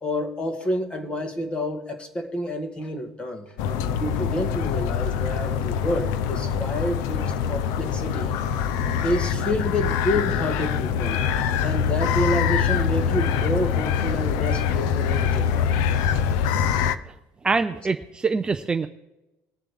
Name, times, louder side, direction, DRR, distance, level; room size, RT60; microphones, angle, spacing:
voice 1, 0.0-3.5 3.9-8.3 9.0-11.2 11.6-15.8, equal, 20° left, 7 dB, 1.5 m, -28 dB
sound 1, 3.6-17.0, left 8 dB, 80° left, 0.6 m, -24 dB
voice 2, 17.4-18.9, right 4 dB, 15° right, 8 dB, 0.4 m, -24 dB
21.5 x 7.3 x 3.5 m, 0.99 s
cardioid pair, 160°, 6 cm